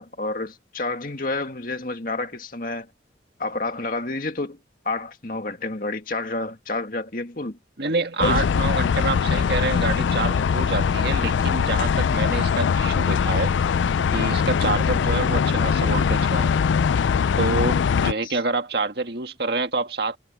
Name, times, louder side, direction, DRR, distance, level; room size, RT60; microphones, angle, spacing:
voice 1, 0.0-2.9 3.4-4.6 4.8-7.6 8.2-8.5 18.2-18.4, left 2 dB, 50° left, 2.2 m, -29 dB
voice 2, 7.8-13.5 14.1-16.5 17.4-20.2, right 3 dB, 60° right, 1.9 m, -27 dB
sound 1, 8.2-18.1, left 6 dB, 85° left, 0.4 m, -21 dB
head